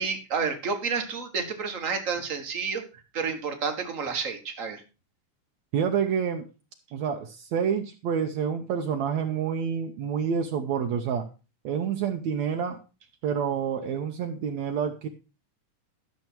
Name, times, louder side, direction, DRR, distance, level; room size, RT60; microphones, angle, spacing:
voice 1, 0.0-2.8 3.1-4.8, right 5 dB, 40° right, 5 dB, 1.1 m, -30 dB
voice 2, 5.7-6.5 6.9-11.3 11.6-12.8 13.2-15.1, right 7 dB, 75° right, 4 dB, 2.0 m, -28 dB
12.5 x 6.8 x 4.5 m, 0.32 s
omnidirectional pair, 3.6 m